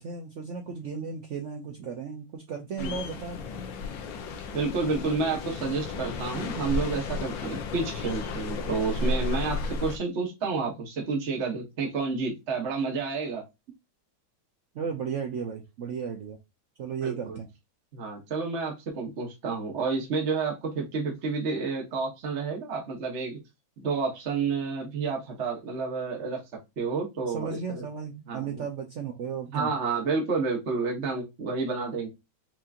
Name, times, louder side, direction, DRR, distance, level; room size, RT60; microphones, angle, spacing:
voice 1, 0.0-3.4 14.7-16.4 16.8-17.5 27.2-29.7, right 6 dB, 85° right, 0.6 m, -35 dB
sound 1, 2.8-10.0, left 2 dB, 75° left, 1.5 m, -33 dB
voice 2, 4.5-13.4 17.0-17.4 17.9-23.4 23.8-26.4 26.8-27.8 28.3-28.6 29.5-32.1, right 4 dB, 40° right, 1.3 m, -30 dB
5.8 x 2.9 x 2.4 m
omnidirectional pair, 2.2 m